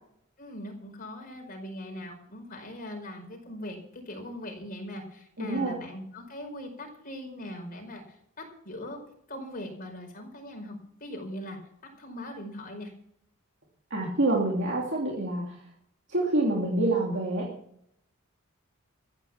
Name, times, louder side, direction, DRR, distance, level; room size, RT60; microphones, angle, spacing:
voice 1, 0.4-9.0 9.3-12.9, left 1 dB, 40° left, 3 dB, 4.9 m, -40 dB
voice 2, 5.4-5.7 13.9-15.6 16.1-17.5, right 2 dB, 55° right, -2 dB, 2.9 m, -27 dB
14.5 x 9.5 x 7.1 m, 0.71 s
head